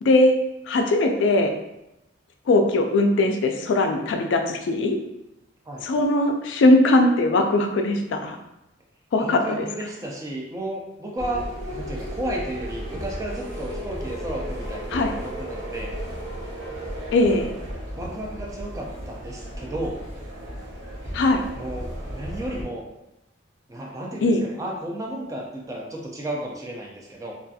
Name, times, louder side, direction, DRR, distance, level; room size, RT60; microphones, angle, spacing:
voice 1, 0.0-0.3 0.7-1.5 2.5-5.0 5.8-8.4 9.1-9.4 14.9-15.1 17.1-17.5 21.1-21.4 24.2-24.4, left 2 dB, 70° left, 4 dB, 0.3 m, -20 dB
voice 2, 5.7-6.0 9.2-16.0 18.0-20.0 21.5-22.9 23.7-27.3, right 1 dB, 20° right, -1 dB, 0.4 m, -33 dB
sound 1, 11.2-22.6, equal, 65° right, 0.7 m, -34 dB
2.6 x 2.4 x 2.3 m, 0.89 s
head